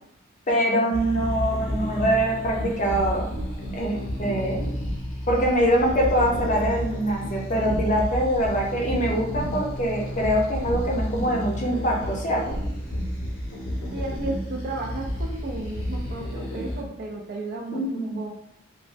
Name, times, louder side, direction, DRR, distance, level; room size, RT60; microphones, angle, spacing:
voice 1, 0.5-3.3 3.7-4.6 5.3-12.4 17.7-18.2, equal, 35° left, -1 dB, 0.5 m, -24 dB
sound 1, 0.9-16.8, equal, 80° left, 0.7 m, -31 dB
voice 2, 13.9-18.3, right 2 dB, 45° right, -1 dB, 0.3 m, -34 dB
3.1 x 2.1 x 2.5 m, 0.76 s
head